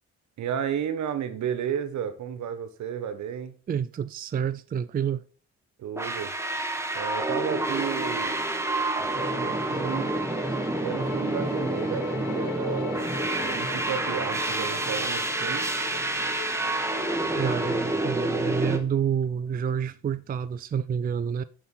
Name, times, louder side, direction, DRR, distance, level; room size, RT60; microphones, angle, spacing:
voice 1, 0.4-3.5 5.8-6.3 6.9-8.4 9.0-10.1 10.8-15.7, right 8 dB, 70° right, 1.3 m, -33 dB
voice 2, 3.7-5.2 17.4-21.4, right 8 dB, 30° right, 0.4 m, -28 dB
sound 1, 6.0-18.8, right 2 dB, 10° right, 1.5 m, -28 dB
Bowed string instrument, 9.0-18.1, left 9 dB, 80° left, 0.8 m, -41 dB
7.1 x 5.9 x 5.5 m
cardioid pair, 90°, 30 cm